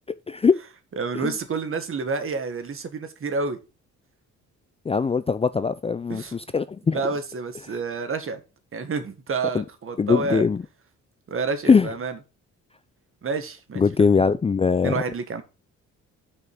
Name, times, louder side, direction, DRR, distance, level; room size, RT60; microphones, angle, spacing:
voice 1, 0.3-0.6 1.2-1.3 4.9-7.0 9.5-9.6 10.0-10.6 11.7-11.9 13.8-14.9, left 5 dB, 20° left, 0.4 m, -21 dB
voice 2, 1.0-3.6 6.1-6.4 6.9-8.4 8.7-10.5 11.3-12.2 13.2-14.1 14.8-15.4, right 4 dB, 45° right, 1.8 m, -29 dB
6.2 x 5.6 x 6.0 m
cardioid pair, 90°, 30 cm